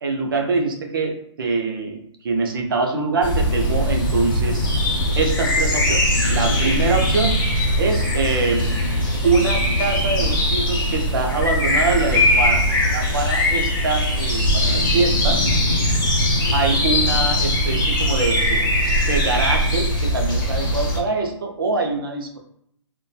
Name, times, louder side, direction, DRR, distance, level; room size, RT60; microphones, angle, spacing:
voice 1, 0.0-4.7 5.2-7.4 7.8-8.6 9.2-12.6 12.9-15.5 16.5-18.7 19.1-22.4, right 3 dB, 45° right, 3 dB, 0.4 m, -24 dB
sound 1, 3.2-21.0, left 1 dB, 40° left, 0.7 m, -20 dB
2.6 x 2.1 x 2.2 m, 0.69 s
hypercardioid pair, 175°, 16 cm